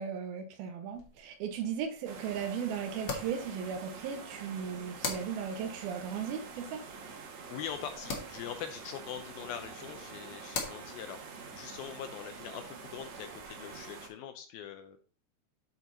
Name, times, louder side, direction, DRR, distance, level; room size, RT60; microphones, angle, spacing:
voice 1, 0.0-6.8, right 7 dB, 80° right, 7 dB, 2.4 m, -36 dB
sound 1, 0.9-13.8, left 4 dB, 65° left, 1.4 m, -45 dB
sound 2, 2.1-14.1, right 5 dB, 60° right, 2.2 m, -46 dB
voice 2, 7.5-11.2 11.5-15.0, left 9 dB, 80° left, 7 dB, 2.2 m, -42 dB
9.7 x 4.6 x 3.9 m, 0.41 s
omnidirectional pair, 4.7 m